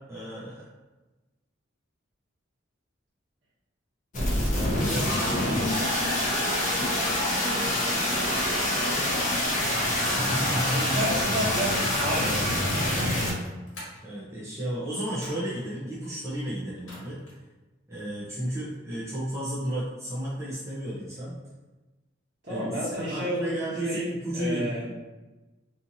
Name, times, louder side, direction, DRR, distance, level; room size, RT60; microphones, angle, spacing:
voice 1, 0.1-0.7 4.1-5.1 9.9-11.1 14.0-17.2 17.9-21.3 22.5-22.7 23.0-24.9, right 1 dB, 15° right, -8 dB, 0.5 m, -33 dB
sound 1, 4.1-13.3, left 1 dB, 40° left, 0.7 m, -26 dB
sound 2, 8.2-8.6 9.8-10.3 11.4-12.2 13.3-14.0 15.1-15.7 16.7-17.4, left 1 dB, 65° left, 1.0 m, -44 dB
voice 2, 10.6-12.4 22.4-24.8, equal, 60° right, -9 dB, 1.3 m, -31 dB
2.8 x 2.5 x 2.6 m, 1.1 s
head